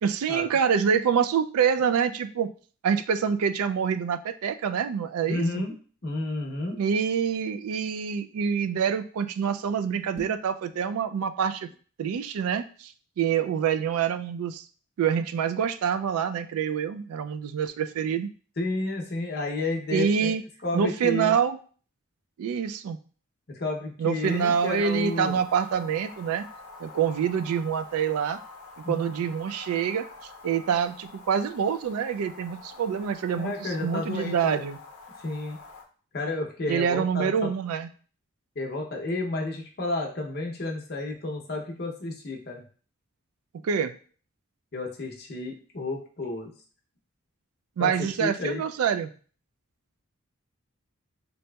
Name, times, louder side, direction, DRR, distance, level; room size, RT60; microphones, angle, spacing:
voice 1, 0.0-2.5 2.8-5.6 6.8-11.7 12.0-14.6 15.0-18.3 19.9-20.4 20.7-21.6 22.4-23.0 24.0-26.4 26.8-28.4 28.9-30.1 30.4-34.8 36.7-37.9 43.6-43.9 47.8-49.1, right 7 dB, 90° right, 10 dB, 0.3 m, -26 dB
voice 2, 5.3-5.7 6.0-6.8 18.6-20.3 20.6-21.4 23.5-25.4 28.8-29.1 33.3-34.6 35.2-35.6 36.1-37.5 38.6-42.6 44.7-46.5 47.8-47.9 48.2-48.6, left 2 dB, 45° left, 0 dB, 0.6 m, -31 dB
sound 1, 10.1-10.6, right 1 dB, 10° right, 0.7 m, -41 dB
sound 2, 24.2-35.8, left 3 dB, 85° left, 0.5 m, -46 dB
4.0 x 2.8 x 2.2 m, 0.41 s
head